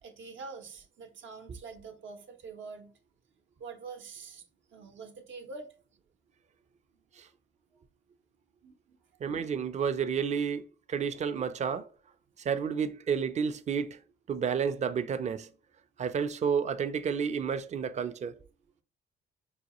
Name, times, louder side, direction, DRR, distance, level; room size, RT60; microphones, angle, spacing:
voice 1, 0.0-2.9 3.6-4.4 4.7-5.7 8.6-9.0, right 4 dB, 75° right, 0.7 m, -45 dB
voice 2, 9.2-10.6 10.9-11.9 12.4-14.0 14.3-15.5 16.0-18.3, right 6 dB, 35° right, 0.4 m, -30 dB
4.8 x 2.3 x 2.9 m
cardioid pair, 90°, 20 cm